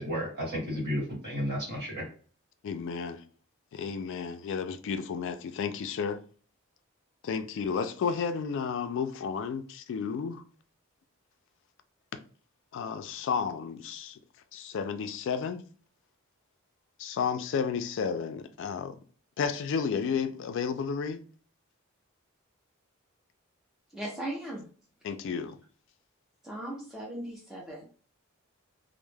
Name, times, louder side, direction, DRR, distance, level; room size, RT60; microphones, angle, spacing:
voice 1, 0.0-2.1, equal, 50° right, 1.2 m, -32 dB
voice 2, 2.6-3.2 3.7-6.2 7.2-10.4 12.7-14.2 14.5-15.6 17.0-19.0 19.4-21.2 25.0-25.6, left 6 dB, 60° left, 0.3 m, -32 dB
voice 3, 23.9-24.7 26.4-27.9, right 1 dB, ahead, 0.4 m, -38 dB
2.2 x 2.0 x 3.2 m
head